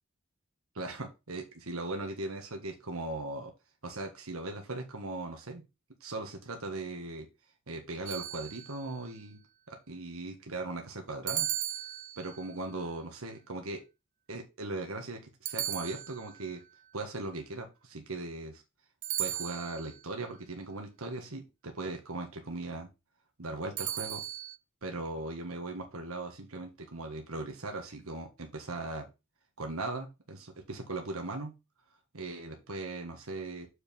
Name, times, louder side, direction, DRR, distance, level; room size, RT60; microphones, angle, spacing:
voice 1, 0.7-3.5 3.8-5.6 6.0-7.3 7.7-9.4 9.7-11.5 12.2-13.8 14.3-16.6 16.9-18.6 19.2-22.9 23.4-24.2 24.8-29.0 29.6-31.5 32.1-33.7, right 2 dB, 75° right, 3 dB, 1.5 m, -39 dB
sound 1, 8.1-9.0 11.3-12.5 15.5-16.5 19.0-20.0 23.8-24.6, right 12 dB, 35° right, 0.4 m, -36 dB
6.6 x 4.8 x 5.3 m, 0.26 s
head